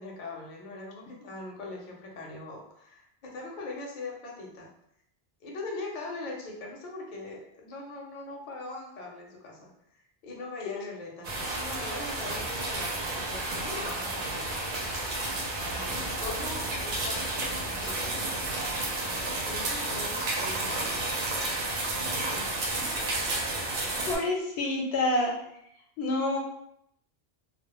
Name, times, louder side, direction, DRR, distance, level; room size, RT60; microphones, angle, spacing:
voice 1, 0.0-4.7 5.4-14.6 15.6-18.5 19.5-22.7, left 3 dB, 55° left, -1 dB, 0.6 m, -41 dB
sound 1, 11.2-24.2, right 2 dB, 60° right, 0.6 m, -31 dB
voice 2, 24.1-25.3 26.0-26.4, left 2 dB, 85° left, 0 dB, 0.8 m, -27 dB
2.1 x 2.0 x 2.9 m, 0.74 s
omnidirectional pair, 1.0 m